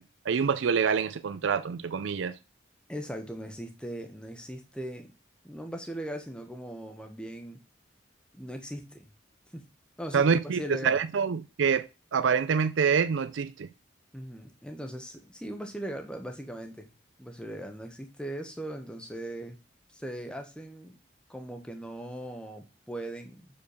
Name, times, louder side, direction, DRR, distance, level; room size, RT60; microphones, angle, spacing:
voice 1, 0.3-2.3 10.1-11.9 12.1-13.7, right 6 dB, 75° right, 0.4 m, -26 dB
voice 2, 2.9-5.1 5.4-7.6 8.3-9.1 9.5-9.7 10.0-11.0 14.1-16.9 17.2-19.6 19.9-21.0 21.3-23.5, right 1 dB, 5° left, 1.2 m, -39 dB
6.8 x 5.3 x 6.7 m
head